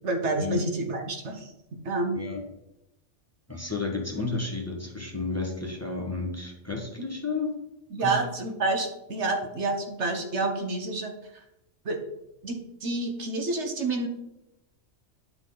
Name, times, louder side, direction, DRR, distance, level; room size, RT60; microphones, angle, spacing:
voice 1, 0.0-1.5 1.8-2.2 7.9-11.1 11.8-12.0 12.4-14.1, right 3 dB, 65° right, 3 dB, 1.4 m, -28 dB
voice 2, 2.1-2.4 3.5-7.5 8.0-8.2, left 3 dB, 10° left, 1 dB, 1.4 m, -32 dB
10.5 x 6.0 x 4.0 m, 0.88 s
omnidirectional pair, 1.3 m